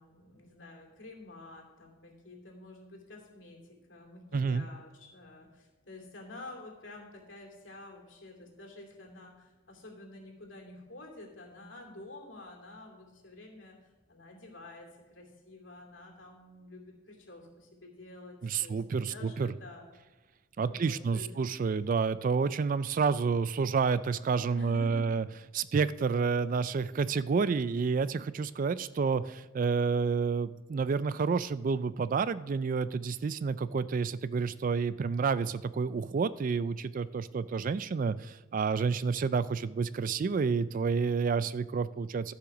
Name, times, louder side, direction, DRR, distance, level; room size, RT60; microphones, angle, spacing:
voice 1, 0.0-3.6 3.9-13.8 14.1-19.9 20.6-21.3 24.5-25.0, left 2 dB, 65° left, 1 dB, 2.8 m, -49 dB
voice 2, 4.3-4.7 18.4-19.5 20.6-25.3 25.5-42.3, right 5 dB, 40° right, 16 dB, 0.3 m, -29 dB
14.0 x 5.9 x 6.0 m, 1.2 s
head